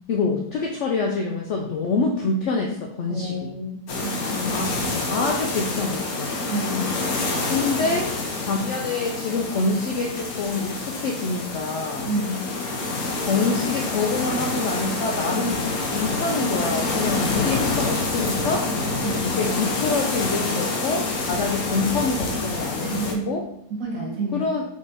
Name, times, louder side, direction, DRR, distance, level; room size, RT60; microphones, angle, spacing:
voice 1, 0.1-3.5 4.5-4.7 5.1-6.3 7.4-8.1 8.4-12.1 13.2-15.6 15.9-18.7 19.2-23.4 24.3-24.6, left 4 dB, 90° left, 1 dB, 0.6 m, -26 dB
voice 2, 3.1-4.6 6.5-6.9 12.0-12.4 19.0-19.4 22.8-23.4 23.7-24.5, right 1 dB, 55° right, -2 dB, 1.3 m, -29 dB
sound 1, 3.9-23.1, left 3 dB, 65° left, 1.1 m, -27 dB
3.7 x 3.1 x 3.9 m, 0.74 s
omnidirectional pair, 1.8 m